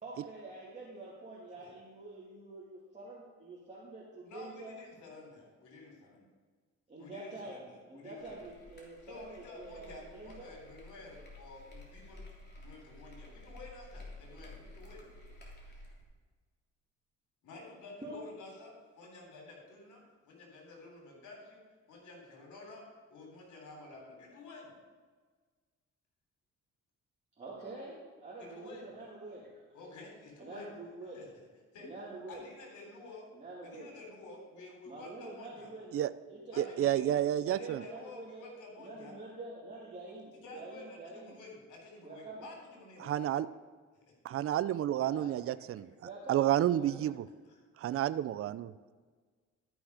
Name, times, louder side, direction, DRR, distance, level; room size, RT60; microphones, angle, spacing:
voice 1, 0.0-4.8 6.9-7.6 7.9-10.5 14.5-14.6 18.0-18.2 27.4-29.5 30.4-31.2 31.8-32.5 33.3-33.9 34.9-36.0 36.3-38.4 38.8-41.4 42.0-42.5 45.1-45.3 46.0-47.1, right 2 dB, 25° right, -7 dB, 2.4 m, -47 dB
voice 2, 4.2-6.3 7.0-8.5 9.1-12.2 12.6-15.1 17.4-21.6 21.9-22.8 23.1-24.7 28.4-28.9 29.7-30.7 31.1-31.3 31.7-31.9 32.3-33.3 33.6-35.7 36.5-37.1 37.5-39.2 40.3-43.3 45.6-45.7 47.4-47.6, left 2 dB, 80° left, 0 dB, 3.7 m, -51 dB
sound 1, 8.2-16.0, left 2 dB, 35° left, 3.1 m, -52 dB
voice 3, 36.6-37.8 43.0-43.5 44.2-45.9 46.3-47.3 47.8-48.9, right 12 dB, 50° right, 14 dB, 0.5 m, -30 dB
13.0 x 6.2 x 4.9 m, 1.5 s
cardioid pair, 90°, 30 cm